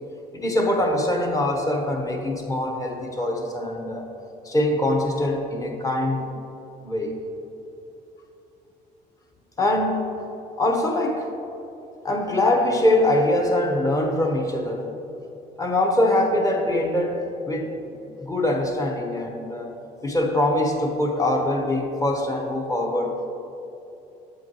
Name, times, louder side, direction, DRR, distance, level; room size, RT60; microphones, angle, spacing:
voice 1, 0.3-4.1 4.4-6.3 6.8-7.1 9.6-10.1 10.6-11.3 12.0-14.9 15.6-17.7 18.2-19.7 20.0-23.3, left 1 dB, 20° left, 2 dB, 0.9 m, -23 dB
8.3 x 7.7 x 3.0 m, 2.9 s
cardioid pair, 110°, 17 cm